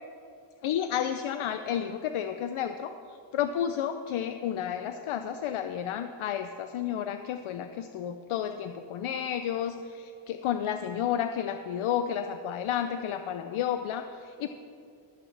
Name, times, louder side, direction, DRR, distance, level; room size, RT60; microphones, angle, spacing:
voice 1, 0.6-14.5, left 9 dB, 75° left, 8 dB, 0.6 m, -31 dB
23.0 x 8.5 x 3.3 m, 2.6 s
wide cardioid pair, 145°, 50 cm